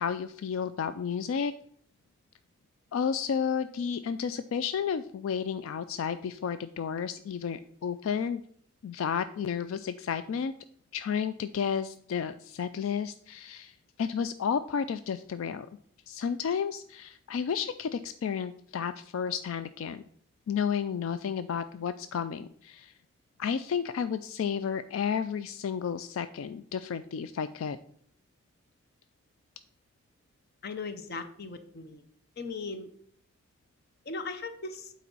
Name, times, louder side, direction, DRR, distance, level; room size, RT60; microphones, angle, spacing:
voice 1, 0.0-1.5 2.9-8.4 8.8-10.5 10.9-15.7 16.1-20.0 20.5-22.9 23.4-27.8, left 7 dB, 75° left, 12 dB, 0.3 m, -32 dB
voice 2, 30.6-32.0 32.4-32.9 34.0-34.9, left 3 dB, 50° left, 9 dB, 0.7 m, -38 dB
8.4 x 4.2 x 5.4 m, 0.62 s
head